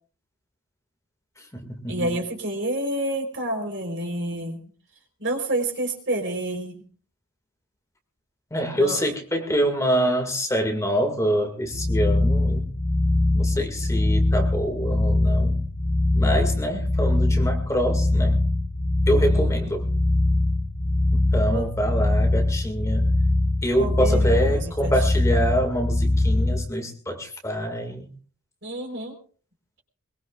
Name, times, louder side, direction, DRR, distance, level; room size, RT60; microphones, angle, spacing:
voice 1, 1.4-2.1 8.5-12.7 13.3-15.7 16.1-18.4 19.1-19.9 21.1-23.1 23.6-28.1, equal, 15° left, 3 dB, 2.2 m, -26 dB
voice 2, 1.9-4.6 5.2-6.8 8.7-9.0 19.3-19.7 21.5-21.7 23.8-24.9 28.6-29.1, right 1 dB, 55° right, 4 dB, 4.1 m, -29 dB
sound 1, 11.6-26.6, left 2 dB, 90° left, 3.6 m, -22 dB
22.5 x 22.0 x 2.5 m, 0.40 s
head